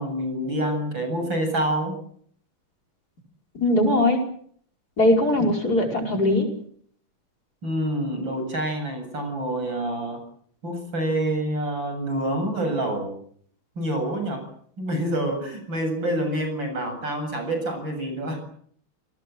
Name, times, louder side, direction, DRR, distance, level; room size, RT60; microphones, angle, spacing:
voice 1, 0.0-2.0 7.6-10.2 10.6-13.2 13.8-14.5 14.8-18.4, right 1 dB, 65° right, 6 dB, 8.5 m, -27 dB
voice 2, 3.6-4.2 5.0-6.5, left 1 dB, 45° left, 2 dB, 5.7 m, -20 dB
29.5 x 19.0 x 7.8 m, 0.62 s
omnidirectional pair, 2.2 m